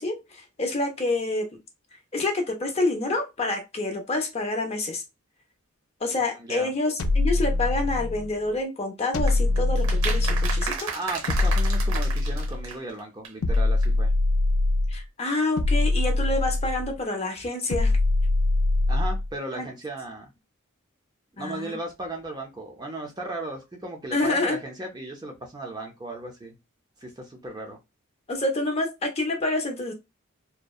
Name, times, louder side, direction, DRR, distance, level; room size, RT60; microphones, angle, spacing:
voice 1, 0.0-1.5 2.1-5.0 6.0-10.9 14.9-18.0 19.5-19.7 21.4-21.8 24.1-24.6 28.3-29.9, left 2 dB, 30° left, 0.5 m, -27 dB
voice 2, 6.4-6.7 10.7-14.1 18.9-20.3 21.4-26.6 27.0-27.8, right 2 dB, 20° right, 0.5 m, -36 dB
sound 1, 7.0-8.3 9.1-10.8 11.3-12.7 13.4-15.0 15.6-17.0 17.7-19.3, left 2 dB, 80° left, 0.4 m, -23 dB
sound 2, 9.3-13.0 13.2-13.3 13.5-13.6 13.8-13.9, right 6 dB, 75° right, 0.8 m, -33 dB
2.6 x 2.1 x 2.3 m
head